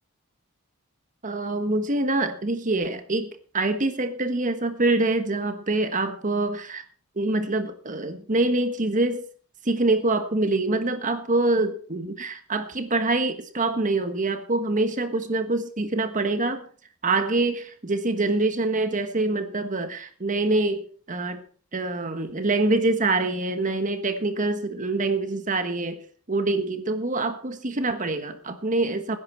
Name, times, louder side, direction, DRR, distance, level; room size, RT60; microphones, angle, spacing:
voice 1, 1.2-6.8 7.2-9.2 9.6-16.7 17.0-21.4 21.7-26.0 26.3-29.2, right 2 dB, 35° right, 8 dB, 1.3 m, -25 dB
19.0 x 10.5 x 4.5 m, 0.42 s
head